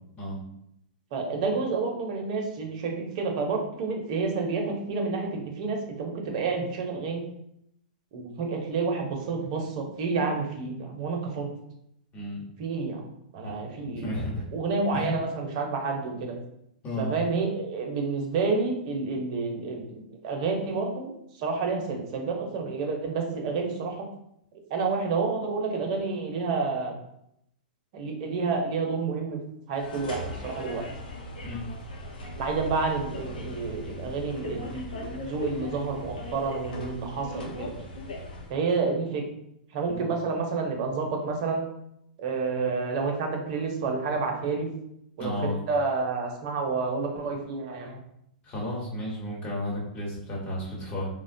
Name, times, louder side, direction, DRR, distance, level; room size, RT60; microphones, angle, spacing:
voice 1, 1.1-7.2 8.1-11.5 12.6-13.0 13.3-14.1 14.5-16.3 17.0-21.1 21.4-24.0 24.7-26.9 27.9-29.4 29.7-30.8 32.4-37.7 38.5-39.2 39.7-41.6 42.2-44.7 45.2-48.0, right 4 dB, 50° right, 2 dB, 0.7 m, -29 dB
voice 2, 12.1-12.5 13.4-13.6 14.0-14.4 14.9-15.2 16.8-17.2 31.4-31.7 39.9-40.1 45.2-45.6 48.4-51.1, left 1 dB, 30° left, -3 dB, 1.1 m, -33 dB
sound 1, 29.7-38.6, left 1 dB, 80° left, 0.6 m, -39 dB
3.2 x 2.2 x 2.6 m, 0.76 s
hypercardioid pair, 125°, 5 cm